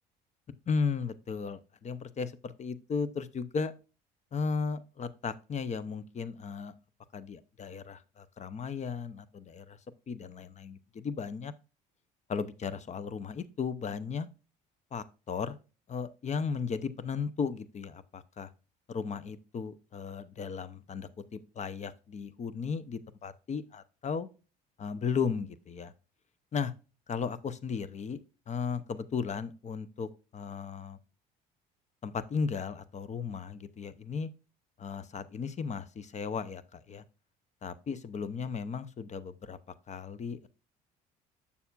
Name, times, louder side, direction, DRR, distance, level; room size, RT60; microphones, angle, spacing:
voice 1, 0.7-3.7 4.3-6.7 7.1-9.8 10.1-11.5 12.3-14.3 14.9-15.6 15.9-18.5 18.9-24.3 24.8-25.9 26.5-26.7 27.1-28.2 28.5-31.0 32.0-34.3 34.8-37.0 37.6-39.6 39.9-40.5, left 5 dB, 35° left, 0.8 m, -35 dB
7.0 x 6.8 x 2.4 m
supercardioid pair, 80°, 20 cm